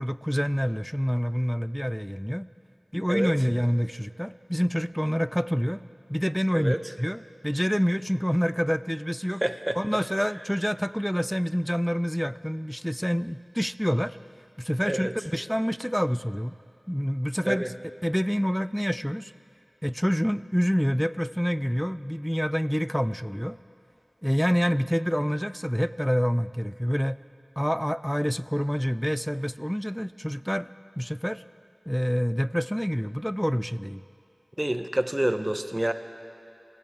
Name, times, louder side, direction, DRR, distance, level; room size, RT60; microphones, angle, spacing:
voice 1, 0.0-2.5 2.9-5.8 6.1-9.4 9.8-14.2 14.6-16.5 16.9-17.6 18.0-19.3 19.8-23.6 24.2-27.2 27.6-31.4 31.9-34.0, equal, 5° left, 16 dB, 0.3 m, -27 dB
voice 2, 9.4-9.8 14.9-15.1 17.4-17.7 34.6-35.9, right 1 dB, 20° right, 9 dB, 0.8 m, -27 dB
25.0 x 16.0 x 3.6 m, 2.6 s
wide cardioid pair, 50°, 0 cm